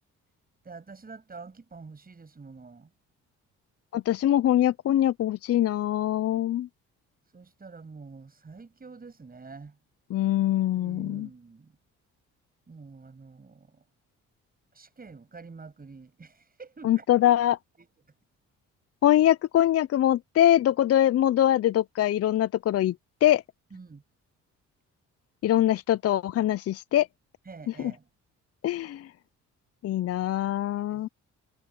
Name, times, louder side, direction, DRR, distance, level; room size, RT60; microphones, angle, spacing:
voice 1, 0.6-2.9 7.2-9.8 10.7-11.8 12.7-13.8 14.7-17.2 17.8-17.9 23.7-24.0 27.4-28.1 30.8-31.1, right 4 dB, 30° right, 7.5 m, -47 dB
voice 2, 3.9-6.7 10.1-11.3 16.8-17.6 19.0-22.9 23.2-23.4 25.4-27.1 28.6-29.1 29.8-31.1, left 12 dB, 55° left, 0.5 m, -23 dB
cardioid pair, 90°, 30 cm